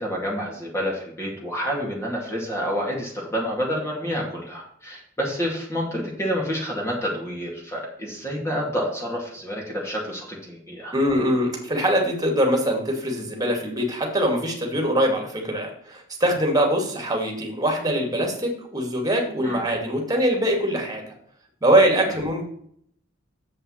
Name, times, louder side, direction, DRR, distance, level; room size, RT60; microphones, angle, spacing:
voice 1, 0.0-10.9 19.4-19.6, equal, 15° left, -2 dB, 2.4 m, -28 dB
voice 2, 10.9-21.0 21.6-22.4, equal, 20° right, 1 dB, 2.5 m, -23 dB
7.8 x 5.5 x 6.4 m, 0.65 s
head